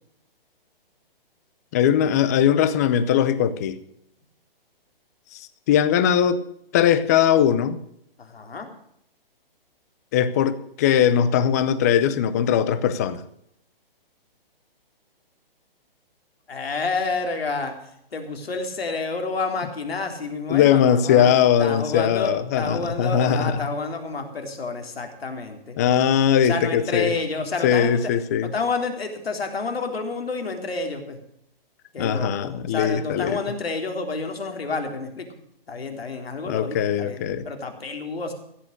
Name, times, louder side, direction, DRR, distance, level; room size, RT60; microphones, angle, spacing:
voice 1, 1.7-3.8 5.3-5.4 5.7-6.4 6.7-7.8 10.1-13.2 20.5-23.6 25.8-27.1 27.6-28.5 32.0-33.4 36.5-37.5, left 9 dB, 15° left, 0.6 m, -20 dB
voice 2, 8.2-8.7 16.5-17.7 18.1-25.8 26.5-28.0 28.4-31.2 31.9-35.3 35.7-38.3, left 3 dB, 85° left, 3.7 m, -29 dB
15.5 x 8.7 x 6.6 m
hypercardioid pair, 160°, 29 cm